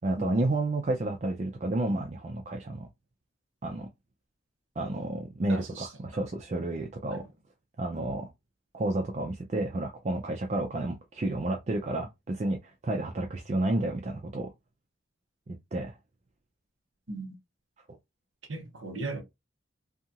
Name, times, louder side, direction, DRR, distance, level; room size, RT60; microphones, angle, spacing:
voice 1, 0.0-2.9 3.6-3.9 4.8-7.2 7.8-8.3 8.7-14.5 15.5-15.9, right 2 dB, 35° right, 0.4 m, -31 dB
voice 2, 5.5-6.2 7.1-7.3 8.0-8.1 17.1-17.4 18.5-19.2, right 3 dB, 75° right, 0.9 m, -38 dB
2.7 x 2.4 x 2.8 m
head